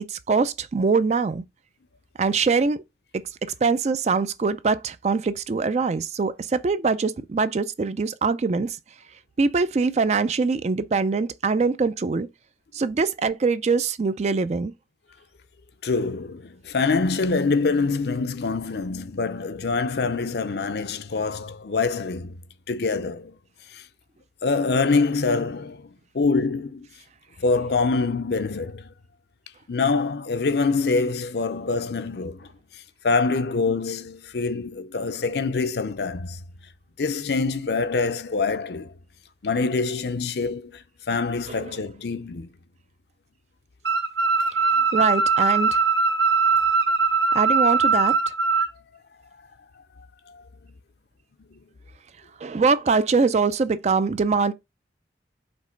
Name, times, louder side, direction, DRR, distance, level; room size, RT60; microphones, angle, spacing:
voice 1, 0.0-1.4 2.2-2.8 3.6-8.8 9.4-12.3 12.7-14.7 44.9-45.8 47.3-48.2 52.4-54.5, right 4 dB, 35° right, 0.3 m, -23 dB
voice 2, 15.8-22.4 22.7-23.4 23.7-23.9 24.4-26.9 27.4-28.9 29.7-36.4 37.0-38.9 39.4-42.5 44.8-44.9 50.3-50.4 51.5-51.6, left 4 dB, 60° left, 0.6 m, -25 dB
sound 1, 43.8-48.7, right 4 dB, 65° right, 0.8 m, -21 dB
5.2 x 3.7 x 5.0 m
head